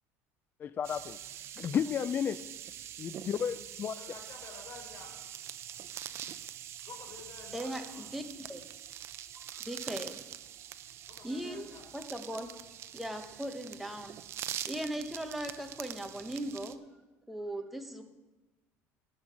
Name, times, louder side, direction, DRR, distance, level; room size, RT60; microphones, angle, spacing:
voice 1, 0.6-1.2 1.6-2.4 3.0-4.0, left 8 dB, 30° left, 13 dB, 0.4 m, -32 dB
sound 1, 0.8-16.8, right 11 dB, 45° right, 0.6 m, -44 dB
voice 2, 4.0-5.1 6.9-8.1 11.1-11.8, left 5 dB, 50° left, 1 dB, 3.8 m, -50 dB
voice 3, 7.5-8.7 9.3-10.2 11.2-11.7 11.9-12.5 12.9-14.2 14.7-16.8 17.3-18.0, right 1 dB, ahead, 5 dB, 1.0 m, -38 dB
10.5 x 8.7 x 6.2 m, 1.1 s
cardioid pair, 140°, 6 cm